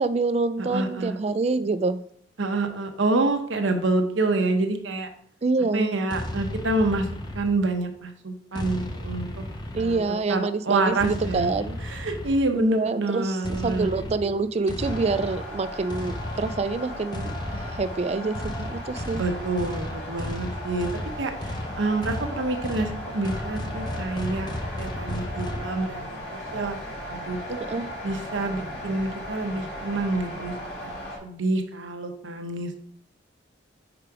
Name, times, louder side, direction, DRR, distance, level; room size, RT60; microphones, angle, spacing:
voice 1, 0.0-2.0 5.4-5.9 9.7-11.8 12.5-19.2 27.7-27.9, right 3 dB, 35° right, 13 dB, 0.3 m, -26 dB
voice 2, 0.7-1.2 2.4-5.1 5.7-7.1 7.3-9.5 9.8-11.5 11.8-13.9 19.1-20.9 21.2-24.5 24.8-27.6 28.0-30.5 30.8-30.9 31.2-32.8, right 2 dB, 80° right, 6 dB, 0.9 m, -27 dB
sound 1, 6.1-7.9 8.5-10.3 11.0-12.6 13.4-25.7, left 1 dB, 20° left, 0.6 m, -34 dB
sound 2, 14.8-31.2, equal, 60° left, 2.1 m, -37 dB
5.0 x 4.8 x 4.7 m, 0.64 s
head